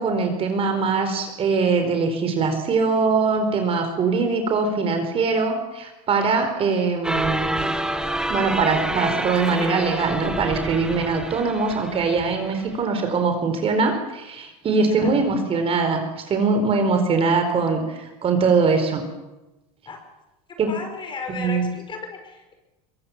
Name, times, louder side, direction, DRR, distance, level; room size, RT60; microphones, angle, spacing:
voice 1, 0.0-7.6 8.3-19.0 20.6-20.7 21.3-21.7, right 4 dB, 30° right, 6 dB, 4.4 m, -22 dB
sound 1, 7.0-12.8, right 1 dB, 5° right, 1.9 m, -28 dB
voice 2, 20.7-22.5, left 4 dB, 25° left, 5 dB, 5.4 m, -35 dB
23.0 x 22.0 x 7.4 m, 1.0 s
supercardioid pair, 130°, 19 cm